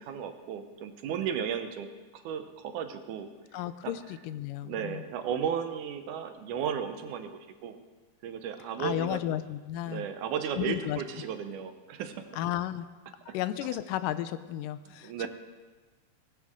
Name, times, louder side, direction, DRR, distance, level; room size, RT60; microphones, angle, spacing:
voice 1, 0.0-1.9 2.1-3.3 3.8-3.9 4.6-7.8 8.2-9.2 9.9-12.3 15.0-15.3, right 8 dB, 75° right, 8 dB, 2.3 m, -34 dB
voice 2, 3.5-5.0 8.8-10.0 10.6-11.0 12.3-12.9 13.3-15.3, left 12 dB, 85° left, 13 dB, 2.3 m, -33 dB
18.5 x 15.5 x 3.7 m, 1.3 s
omnidirectional pair, 3.7 m